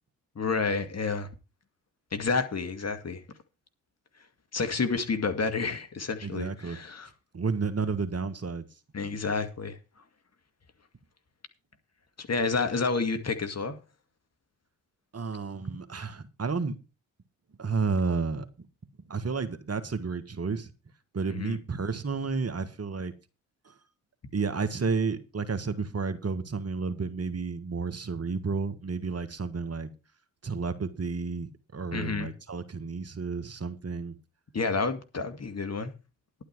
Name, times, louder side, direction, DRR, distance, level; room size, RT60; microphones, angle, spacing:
voice 1, 0.4-1.3 2.1-3.2 4.5-7.1 8.9-9.8 12.2-13.8 21.3-21.6 31.9-32.3 34.5-35.9, left 4 dB, 35° left, 2.2 m, -29 dB
voice 2, 6.2-6.8 7.3-8.6 15.1-16.8 17.6-18.7 19.1-20.7 21.1-23.1 23.6-23.7 24.3-29.9 30.4-34.1, right 4 dB, 35° right, 1.7 m, -31 dB
11.0 x 10.0 x 4.6 m
hypercardioid pair, 45°, 42 cm